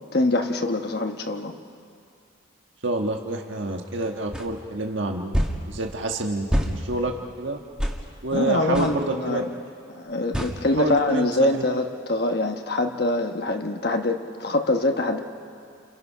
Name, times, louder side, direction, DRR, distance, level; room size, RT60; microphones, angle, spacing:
voice 1, 0.0-1.6 8.3-9.4 9.9-15.2, left 2 dB, 50° left, 4 dB, 1.2 m, -24 dB
voice 2, 2.8-7.6 8.2-9.4 10.8-11.6, right 2 dB, 70° right, 2 dB, 1.5 m, -28 dB
sound 1, 4.3-4.5 5.3-5.6 6.5-6.7 7.8-8.0 8.7-8.9 10.3-10.6, equal, 5° right, 1.7 m, -24 dB
30.0 x 29.0 x 5.7 m, 2.4 s
head